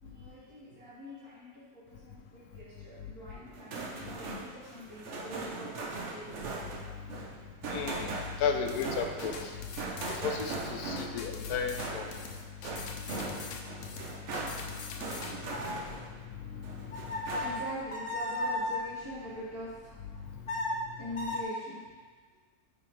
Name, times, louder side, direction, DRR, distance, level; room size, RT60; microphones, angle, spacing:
voice 1, 0.0-6.5 15.4-16.1 17.3-20.0 21.0-21.8, left 1 dB, 75° right, -11 dB, 2.9 m, -44 dB
sound 1, 3.5-16.2 16.6-17.8, right 3 dB, 55° right, 1.1 m, -40 dB
voice 2, 7.7-8.1 8.4-9.5 10.1-12.1 16.5-16.6, left 6 dB, 85° left, 5 dB, 1.2 m, -33 dB
sound 2, 8.7-15.3, left 5 dB, 65° left, 0.9 m, -44 dB
sound 3, 15.5-18.9 20.1-21.4, left 2 dB, 40° left, 1.0 m, -36 dB
9.7 x 4.2 x 3.2 m, 1.5 s
omnidirectional pair, 1.6 m